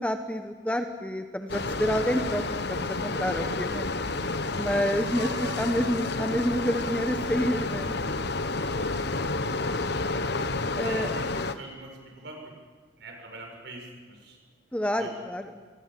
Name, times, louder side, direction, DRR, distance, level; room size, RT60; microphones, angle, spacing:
voice 1, 0.0-2.4 2.7-3.9 4.6-7.9 10.7-11.1 14.7-15.5, equal, 5° left, 6 dB, 1.0 m, -28 dB
sound 1, 1.5-11.6, left 3 dB, 55° left, 1.1 m, -30 dB
Piano, 5.2-7.1, right 3 dB, 25° right, 4.7 m, -44 dB
voice 2, 10.7-12.5 13.0-14.4 15.0-15.1, right 2 dB, 55° right, 2 dB, 7.2 m, -44 dB
28.5 x 22.5 x 7.7 m, 1.5 s
head